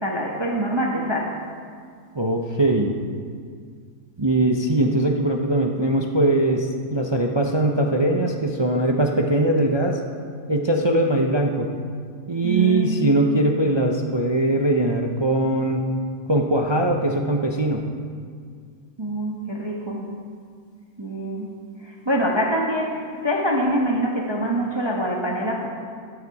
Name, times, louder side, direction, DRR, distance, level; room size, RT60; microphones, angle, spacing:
voice 1, 0.0-1.4 12.4-13.1 19.0-20.1 21.0-21.5 21.8-25.7, equal, 20° right, -1 dB, 1.0 m, -25 dB
voice 2, 2.1-2.9 4.2-10.0 10.5-11.7 12.3-15.8 16.3-17.9, right 1 dB, 45° right, 1 dB, 0.3 m, -21 dB
12.5 x 9.8 x 4.8 m, 2.1 s
omnidirectional pair, 1.7 m